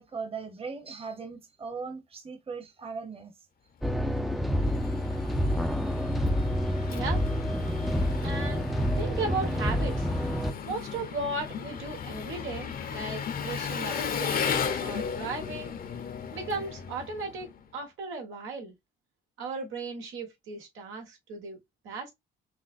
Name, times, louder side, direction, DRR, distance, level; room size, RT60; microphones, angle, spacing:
voice 1, 0.0-3.3, right 5 dB, 30° right, 1.1 m, -38 dB
sound 1, 3.8-10.5, equal, ahead, 0.5 m, -28 dB
Engine, 4.1-17.7, left 7 dB, 45° left, 0.8 m, -36 dB
voice 2, 6.9-7.2 8.2-8.7 9.0-10.1 10.6-15.7 16.3-18.7 19.4-21.6 21.8-22.1, right 3 dB, 85° right, 1.5 m, -36 dB
6.0 x 2.2 x 2.5 m
cardioid pair, 90°, 20 cm